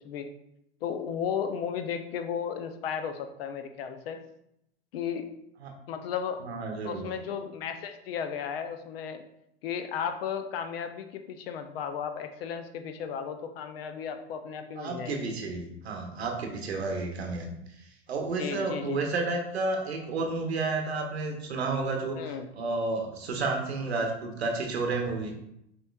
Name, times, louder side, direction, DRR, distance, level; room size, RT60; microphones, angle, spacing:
voice 1, 0.8-4.2 4.9-5.2 5.9-6.4 6.8-9.2 9.6-15.3 18.4-19.1 22.2-22.5, left 7 dB, 65° left, 8 dB, 0.6 m, -34 dB
voice 2, 6.4-7.0 14.8-17.6 18.1-25.3, right 3 dB, 85° right, 3 dB, 0.8 m, -31 dB
6.1 x 3.0 x 2.3 m, 0.79 s
hypercardioid pair, 85°, 32 cm